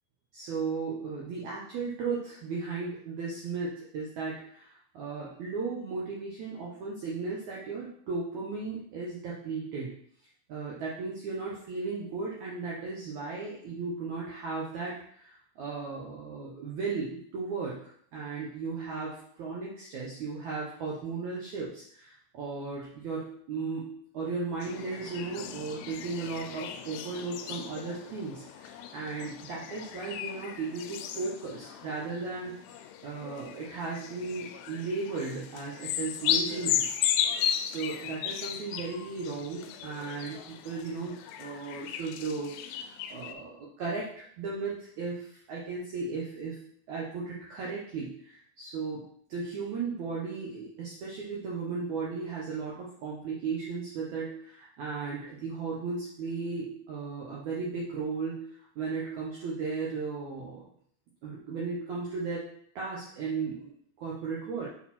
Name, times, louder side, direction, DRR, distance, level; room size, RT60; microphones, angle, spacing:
voice 1, 0.3-9.9 10.5-32.6 33.0-37.0 37.6-42.5 43.1-46.6 46.9-49.0 49.3-58.5 58.8-60.6 61.2-62.5 62.8-64.7, right 4 dB, 80° right, -5 dB, 1.7 m, -36 dB
sound 1, 24.6-43.3, left 10 dB, 80° left, 2.4 m, -35 dB
6.6 x 4.3 x 4.3 m, 0.63 s
omnidirectional pair, 4.9 m